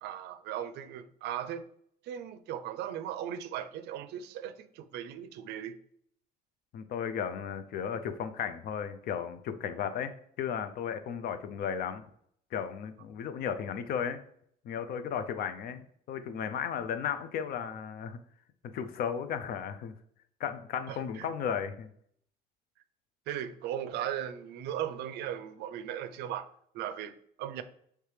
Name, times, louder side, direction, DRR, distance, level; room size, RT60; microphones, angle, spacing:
voice 1, 0.0-1.6 2.0-5.8 20.9-21.3 23.3-26.5 26.7-27.6, right 10 dB, 80° right, 0.4 m, -37 dB
voice 2, 6.7-12.0 12.5-14.2 14.6-18.2 18.7-19.9 20.4-21.9, left 8 dB, 65° left, 0.5 m, -35 dB
3.2 x 3.2 x 4.8 m
cardioid pair, 110°, 17 cm